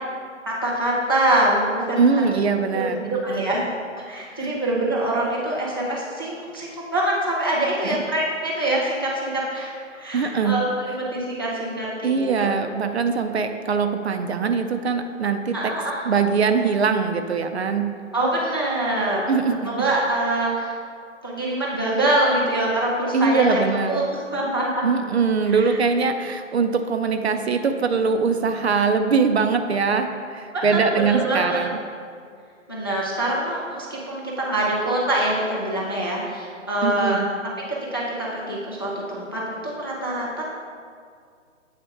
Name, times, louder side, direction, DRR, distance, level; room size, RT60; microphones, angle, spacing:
voice 1, 0.5-2.0 2.7-3.7 4.1-12.5 15.5-16.0 18.1-19.3 19.7-20.8 21.2-23.6 23.9-24.9 25.5-25.7 30.5-31.6 32.7-37.2 37.9-40.4, right 1 dB, 20° left, -4 dB, 0.4 m, -24 dB
voice 2, 2.0-3.5 7.8-8.0 10.1-10.6 12.0-15.7 16.0-18.0 19.3-19.9 23.1-24.0 24.8-31.8 36.8-37.3, right 5 dB, 55° right, 7 dB, 0.5 m, -22 dB
7.9 x 3.3 x 4.4 m, 2.1 s
figure-of-eight pair, 145°, 39 cm